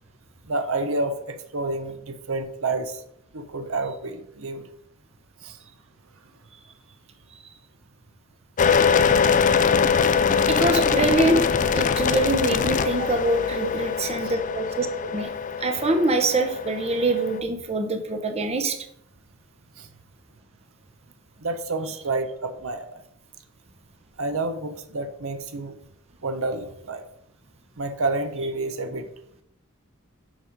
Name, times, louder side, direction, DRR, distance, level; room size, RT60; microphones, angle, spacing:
voice 1, 0.5-3.0 3.3-4.7 5.4-5.6 9.4-9.6 13.6-13.7 14.1-14.3 19.8-19.9 21.4-22.9 24.2-25.8 26.2-27.0 27.8-29.1, right 2 dB, 70° right, 8 dB, 0.8 m, -29 dB
sound 1, 8.6-17.4, left 6 dB, 35° left, 0.4 m, -23 dB
voice 2, 10.5-11.4 11.7-15.3 15.6-18.8, right 2 dB, 30° right, 5 dB, 0.8 m, -24 dB
7.2 x 5.2 x 5.1 m, 0.74 s
head